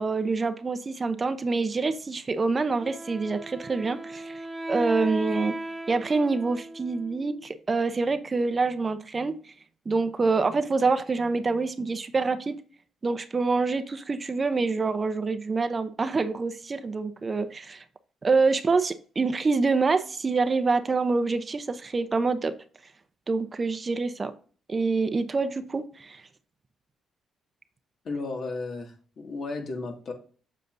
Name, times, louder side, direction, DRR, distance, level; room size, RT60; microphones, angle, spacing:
voice 1, 0.0-4.4 4.7-5.5 5.9-9.4 9.9-12.6 13.0-17.8 18.2-22.5 23.3-24.3 24.7-26.2, right 4 dB, 30° right, 0.7 m, -26 dB
Wind instrument woodwind instrument, 2.8-7.6, right 1 dB, 10° right, 1.0 m, -36 dB
voice 2, 28.0-30.1, left 3 dB, 55° left, 2.0 m, -34 dB
7.7 x 6.5 x 2.6 m
cardioid pair, 90°, 0 cm